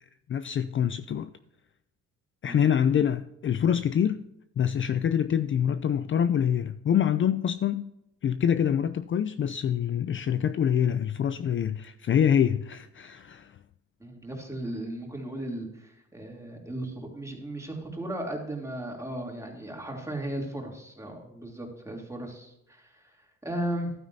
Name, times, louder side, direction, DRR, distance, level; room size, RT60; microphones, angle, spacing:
voice 1, 0.3-1.3 2.4-4.2 4.6-7.9 8.2-13.6, left 9 dB, 40° left, 0.5 m, -25 dB
voice 2, 2.4-3.0 14.0-23.9, right 1 dB, 10° right, 3.0 m, -36 dB
12.0 x 9.2 x 2.7 m
cardioid pair, 90°, 30 cm